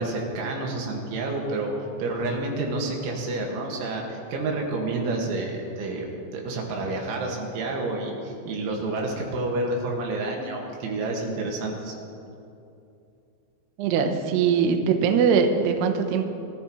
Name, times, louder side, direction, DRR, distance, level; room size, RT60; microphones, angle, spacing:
voice 1, 0.0-6.1 6.3-11.9, right 2 dB, 90° right, 0 dB, 4.3 m, -29 dB
voice 2, 13.8-16.3, right 6 dB, 75° right, 5 dB, 2.7 m, -21 dB
24.0 x 14.0 x 3.1 m, 2.7 s
omnidirectional pair, 5.3 m